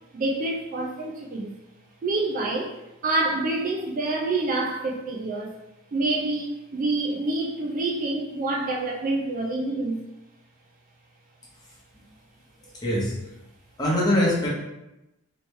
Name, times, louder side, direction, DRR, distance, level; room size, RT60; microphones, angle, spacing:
voice 1, 0.1-1.5 2.0-5.6 5.9-10.0, right 2 dB, 40° right, -1 dB, 0.4 m, -27 dB
voice 2, 12.6-13.1 13.8-14.5, left 1 dB, 20° left, -6 dB, 1.0 m, -23 dB
3.1 x 2.9 x 3.2 m, 0.93 s
head